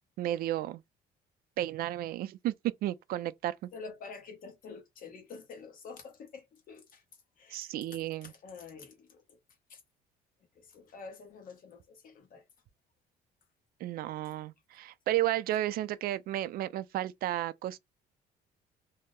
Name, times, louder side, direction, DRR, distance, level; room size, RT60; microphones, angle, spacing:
voice 1, 0.2-0.8 1.6-2.5 2.8-3.7 7.5-8.3 13.8-17.8, right 14 dB, 60° right, 0.4 m, -33 dB
voice 2, 3.7-7.0 7.4-7.9 8.2-9.4 9.7-9.8 10.5-12.4, left 4 dB, 55° left, 1.1 m, -48 dB
2.7 x 2.0 x 3.7 m
cardioid pair, 110°, 17 cm